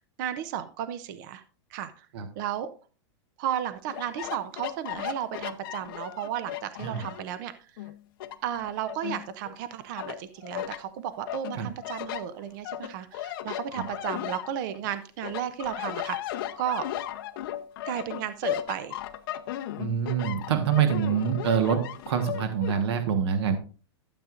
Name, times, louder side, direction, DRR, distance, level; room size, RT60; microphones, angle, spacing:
voice 1, 0.2-1.4 1.7-2.1 2.4-2.7 3.4-7.5 8.4-16.8 17.8-19.0, right 10 dB, 45° right, 12 dB, 0.6 m, -34 dB
sound 1, 3.9-7.3 7.8-9.6 10.0-10.8 11.3-14.9 15.2-22.8, left 12 dB, 50° left, 0.8 m, -36 dB
voice 2, 19.8-23.6, right 8 dB, 65° right, 8 dB, 1.4 m, -26 dB
12.5 x 7.8 x 2.5 m, 0.37 s
supercardioid pair, 165°, 15 cm